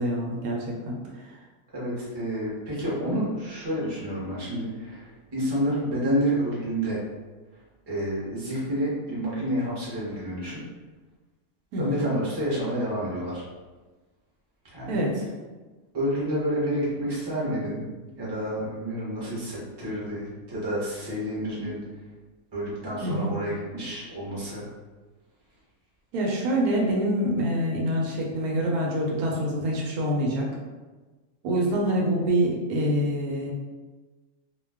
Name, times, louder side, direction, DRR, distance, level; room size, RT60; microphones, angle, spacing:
voice 1, 0.0-1.4 11.7-12.1 14.9-15.2 23.0-23.4 26.1-30.5 31.4-33.5, right 1 dB, 80° right, -2 dB, 1.1 m, -26 dB
voice 2, 1.7-7.0 7.9-10.6 11.8-13.4 14.6-15.0 15.9-17.8 18.2-21.8 22.5-24.6, equal, 20° right, -7 dB, 0.7 m, -29 dB
2.5 x 2.2 x 3.4 m, 1.3 s
omnidirectional pair, 1.6 m